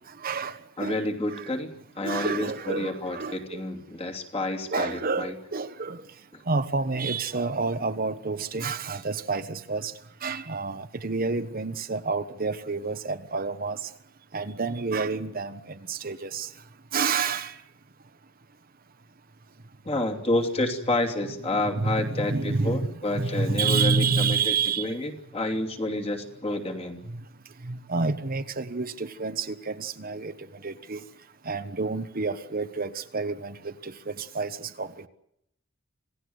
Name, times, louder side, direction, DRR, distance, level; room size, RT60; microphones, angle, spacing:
voice 1, 0.2-1.0 2.0-3.6 4.7-6.0 6.5-9.9 10.2-13.8 14.3-16.5 16.9-17.5 21.7-22.9 23.1-24.9 27.6-30.3 30.6-31.0 31.5-35.1, right 4 dB, 50° right, 9 dB, 1.2 m, -29 dB
voice 2, 0.8-5.3 6.3-6.4 19.8-27.0, left 2 dB, 30° left, 3 dB, 2.9 m, -29 dB
27.0 x 17.5 x 8.0 m, 0.76 s
head